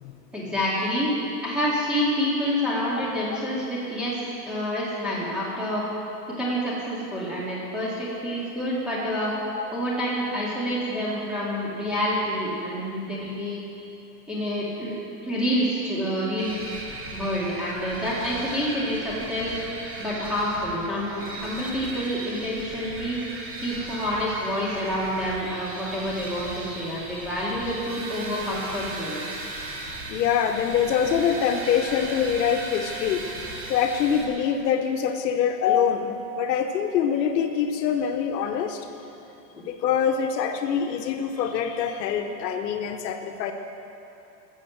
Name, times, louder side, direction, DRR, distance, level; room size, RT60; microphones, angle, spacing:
voice 1, 0.3-1.1 1.4-4.2 4.5-5.8 6.3-9.3 9.7-13.6 14.3-15.0 15.2-16.5 17.1-19.5 20.0-23.2 23.6-29.4, equal, ahead, -9 dB, 2.3 m, -28 dB
sound 1, 16.4-34.3, right 2 dB, 25° right, 1.9 m, -37 dB
voice 2, 30.1-33.2 33.7-38.9 39.6-43.5, left 8 dB, 85° left, 6 dB, 1.0 m, -24 dB
14.0 x 7.2 x 7.2 m, 2.9 s
supercardioid pair, 150°, 49 cm